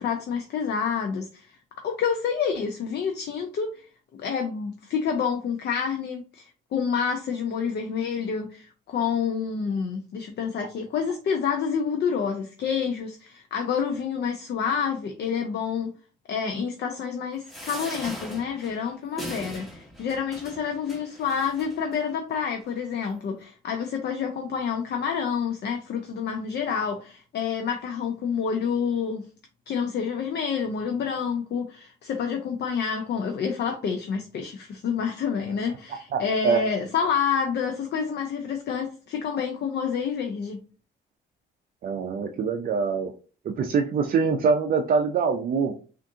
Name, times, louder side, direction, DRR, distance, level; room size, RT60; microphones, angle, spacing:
voice 1, 0.0-3.9 4.2-15.9 16.3-29.2 29.7-40.6, left 6 dB, 60° left, 4 dB, 0.5 m, -28 dB
sound 1, 17.5-22.0 22.7-22.8 23.0-23.1, equal, ahead, 1.2 m, -40 dB
voice 2, 36.1-36.6 41.8-43.1 43.4-45.7, right 5 dB, 50° right, 4 dB, 0.5 m, -24 dB
3.5 x 2.5 x 2.7 m, 0.37 s
cardioid pair, 90°, 20 cm